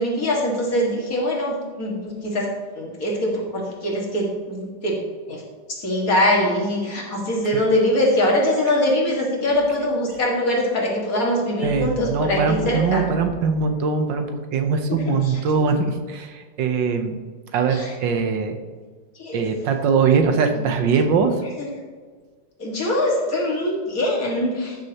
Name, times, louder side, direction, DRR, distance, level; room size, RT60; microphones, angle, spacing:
voice 1, 0.0-5.0 5.3-5.4 5.7-13.1 14.9-15.4 17.7-17.9 19.1-19.5 20.6-20.7 21.4-21.7 22.6-24.9, left 1 dB, 50° left, -2 dB, 2.2 m, -23 dB
voice 2, 11.6-17.2 17.5-18.6 19.3-21.4, right 5 dB, 85° right, 6 dB, 1.6 m, -21 dB
13.5 x 6.5 x 2.9 m, 1.5 s
omnidirectional pair, 1.9 m